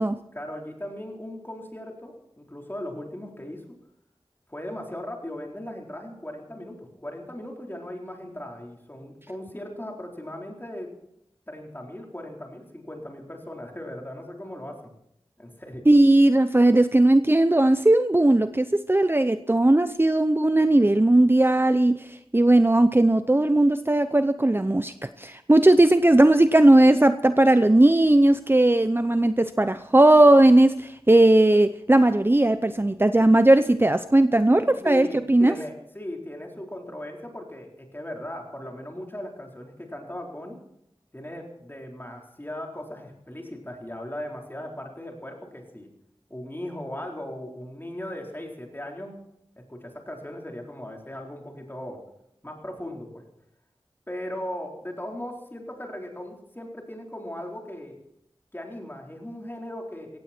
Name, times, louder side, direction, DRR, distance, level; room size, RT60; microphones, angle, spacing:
voice 1, 0.3-3.8 4.5-10.9 11.5-14.9 15.4-15.8 34.5-40.6 41.1-45.9 46.3-49.2 49.7-52.0 52.4-53.2 54.1-58.0 58.5-60.2, left 1 dB, 20° left, 1 dB, 4.1 m, -38 dB
voice 2, 15.9-35.5, right 1 dB, 20° right, 11 dB, 0.7 m, -18 dB
17.5 x 16.0 x 4.4 m, 0.78 s
wide cardioid pair, 45°, 10 cm